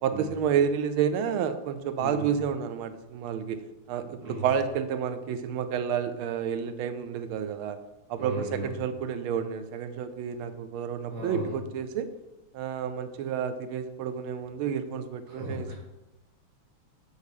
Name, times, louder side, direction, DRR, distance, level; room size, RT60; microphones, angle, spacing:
voice 1, 0.0-3.6 3.9-7.8 8.1-12.1 12.5-15.7, right 7 dB, 85° right, 11 dB, 1.4 m, -30 dB
voice 2, 2.0-2.3 4.0-4.5 8.2-8.7 11.1-11.5 15.3-15.7, right 2 dB, 50° right, -3 dB, 2.4 m, -35 dB
6.4 x 4.9 x 5.2 m, 1.0 s
omnidirectional pair, 2.3 m